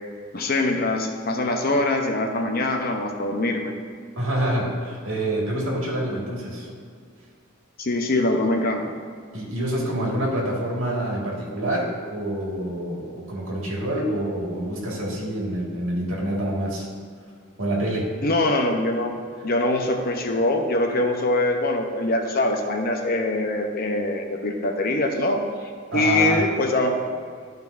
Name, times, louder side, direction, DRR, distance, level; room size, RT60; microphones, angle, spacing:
voice 1, 0.3-3.7 7.8-8.9 18.2-19.1 19.4-25.4 25.9-27.0, left 2 dB, 45° left, 3 dB, 0.8 m, -23 dB
voice 2, 4.2-6.7 9.3-16.9 17.6-18.1 25.9-26.4, right 1 dB, 80° right, -3 dB, 2.0 m, -27 dB
12.5 x 5.3 x 2.6 m, 2.1 s
head